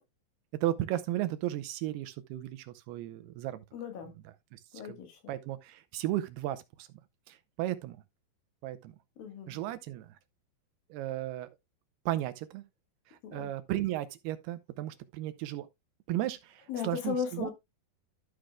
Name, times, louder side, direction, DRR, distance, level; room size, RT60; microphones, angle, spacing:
voice 1, 0.6-3.6 4.5-5.0 5.3-6.9 7.3-8.0 8.6-8.9 9.5-10.1 10.9-11.5 12.1-12.6 13.1-15.7 16.1-17.5, right 14 dB, 80° right, 2.6 m, -35 dB
voice 2, 3.7-4.1 4.7-5.2 9.2-9.6 13.2-13.5 16.7-17.5, left 7 dB, 65° left, 3.0 m, -36 dB
13.0 x 6.3 x 2.2 m
omnidirectional pair, 4.8 m